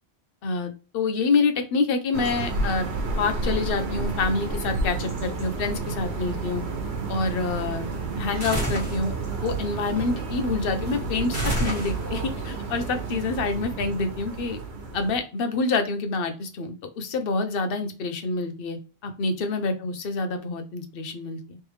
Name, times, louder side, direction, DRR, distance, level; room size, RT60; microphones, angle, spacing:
voice 1, 0.4-2.9 3.2-6.6 7.1-7.9 8.2-9.1 9.4-14.6 14.9-18.8 19.0-21.6, left 4 dB, 60° left, 7 dB, 0.8 m, -27 dB
sound 1, 2.1-15.2, right 3 dB, 75° right, 1.2 m, -31 dB
sound 2, 8.4-9.0 11.3-12.3, equal, 15° right, 1.8 m, -28 dB
3.3 x 3.3 x 3.1 m, 0.35 s
omnidirectional pair, 1.1 m